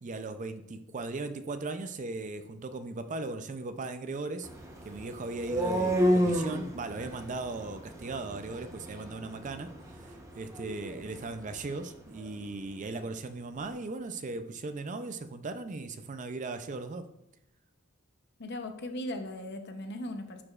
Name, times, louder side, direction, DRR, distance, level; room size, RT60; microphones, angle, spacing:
voice 1, 0.0-4.5 4.8-9.7 10.0-17.1, right 3 dB, 35° right, 9 dB, 0.4 m, -38 dB
sound 1, 4.4-12.4, equal, 15° right, 0.9 m, -32 dB
voice 2, 18.4-20.4, left 1 dB, 55° left, 6 dB, 0.8 m, -38 dB
10.5 x 4.9 x 2.4 m, 0.82 s
head